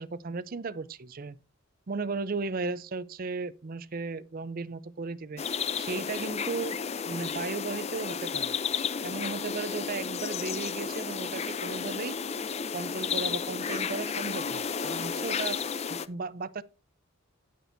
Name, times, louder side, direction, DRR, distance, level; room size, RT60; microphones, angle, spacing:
voice 1, 0.0-1.4 1.9-6.8 7.1-8.6 9.0-12.2 12.7-15.6 15.9-16.6, right 4 dB, 45° right, 0.5 m, -35 dB
sound 1, 5.4-16.1, left 6 dB, 30° left, 0.5 m, -32 dB
17.0 x 6.1 x 2.6 m
head